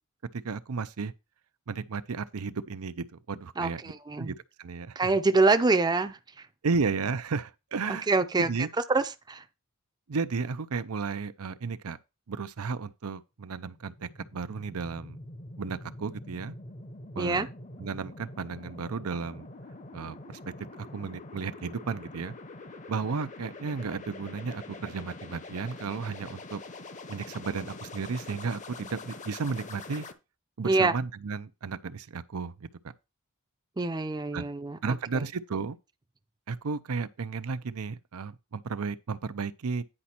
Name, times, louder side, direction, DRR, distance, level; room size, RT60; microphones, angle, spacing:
voice 1, 0.3-1.1 1.7-3.8 4.2-5.1 6.6-8.7 10.1-12.0 12.3-15.2 15.6-16.5 17.2-17.5 17.8-19.5 19.9-20.2 20.8-22.3 22.9-26.6 27.1-30.1 30.6-32.7 34.3-34.4 34.8-35.8 36.5-39.8, right 4 dB, 85° right, 0.6 m, -33 dB
voice 2, 3.6-4.4 5.0-6.5 7.9-8.5 8.9-9.4 17.2-17.5 30.6-30.9 33.8-35.0, right 3 dB, 20° right, 0.5 m, -25 dB
sound 1, 13.7-30.1, left 2 dB, 35° left, 0.8 m, -45 dB
9.9 x 5.1 x 4.4 m
head